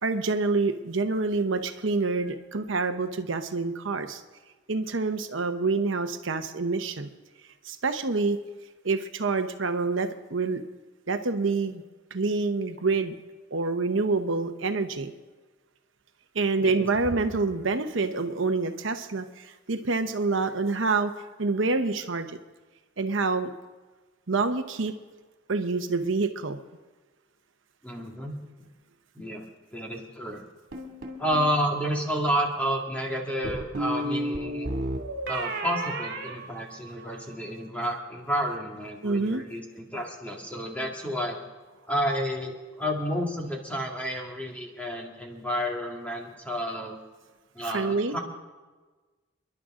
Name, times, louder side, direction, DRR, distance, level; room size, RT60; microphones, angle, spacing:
voice 1, 0.0-4.2 4.7-7.1 7.6-8.4 8.8-10.6 11.1-11.8 12.1-13.1 13.5-15.1 16.3-21.1 21.4-22.4 23.0-23.5 24.3-24.9 25.5-26.6 39.0-39.4 47.6-48.2, right 3 dB, 70° right, 7 dB, 0.9 m, -27 dB
voice 2, 27.8-28.7 29.1-30.4 31.2-34.7 35.3-41.4 41.9-47.0 47.5-48.2, equal, 5° left, 0 dB, 2.1 m, -30 dB
sound 1, 30.7-31.5 33.4-37.2, right 1 dB, 50° right, 2.7 m, -32 dB
29.0 x 11.0 x 3.8 m, 1.3 s
head